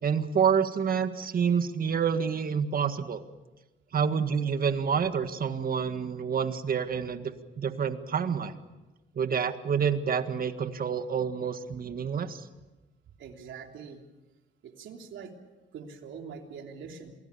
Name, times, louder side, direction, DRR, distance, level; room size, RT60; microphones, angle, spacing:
voice 1, 0.0-3.2 3.9-8.5 9.1-12.4, right 7 dB, 45° right, 9 dB, 1.8 m, -28 dB
voice 2, 13.2-14.0 14.6-15.3 15.7-17.2, right 6 dB, 75° right, 3 dB, 3.3 m, -43 dB
27.5 x 19.0 x 7.0 m, 1.1 s
cardioid pair, 90°, 20 cm